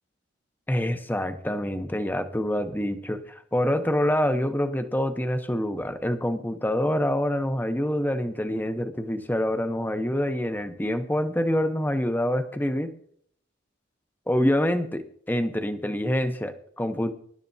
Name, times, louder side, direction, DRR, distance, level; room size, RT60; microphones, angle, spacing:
voice 1, 0.7-12.9 14.3-17.1, left 1 dB, 10° left, 8 dB, 0.8 m, -26 dB
23.5 x 11.5 x 2.7 m, 0.63 s
head